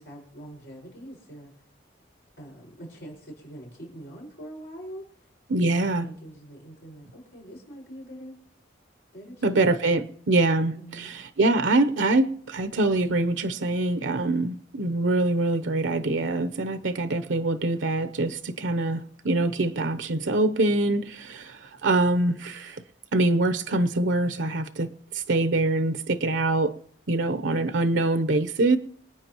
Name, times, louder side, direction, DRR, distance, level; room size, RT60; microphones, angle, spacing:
voice 1, 0.0-1.5 2.4-5.3 5.6-8.4 9.1-10.1 10.8-11.1, right 1 dB, 55° left, 5.4 m, -44 dB
voice 2, 5.5-6.0 9.4-22.8 23.1-26.7 27.1-28.8, right 2 dB, 85° right, 0.8 m, -24 dB
26.0 x 9.1 x 3.0 m
head